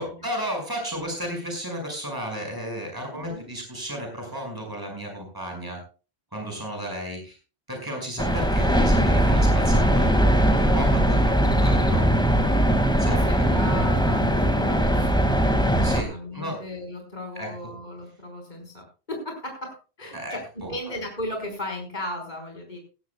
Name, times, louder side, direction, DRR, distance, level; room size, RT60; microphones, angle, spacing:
voice 1, 0.0-5.8 6.3-7.4 7.7-12.0 13.0-13.8 15.8-16.6 17.3-17.5 20.1-20.7, equal, 20° right, 2 dB, 5.7 m, -33 dB
sound 1, 8.2-16.0, equal, 5° left, 1.9 m, -20 dB
voice 2, 13.0-20.4 20.7-22.8, left 1 dB, 40° left, 2 dB, 4.8 m, -36 dB
18.0 x 15.5 x 2.3 m, 0.33 s
omnidirectional pair, 1.1 m